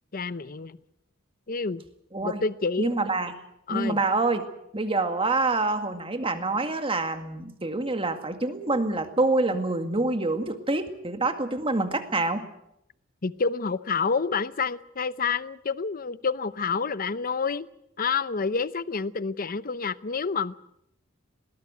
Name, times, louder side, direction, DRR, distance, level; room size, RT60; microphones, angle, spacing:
voice 1, 0.1-0.8 1.5-1.8 2.2-2.9 3.7-4.0 13.2-17.7 18.0-20.5, left 5 dB, 45° left, 15 dB, 0.8 m, -28 dB
voice 2, 2.1-2.4 2.8-3.3 3.7-4.4 4.7-12.4, right 2 dB, 30° right, 7 dB, 2.1 m, -26 dB
20.5 x 18.5 x 8.1 m, 0.80 s
head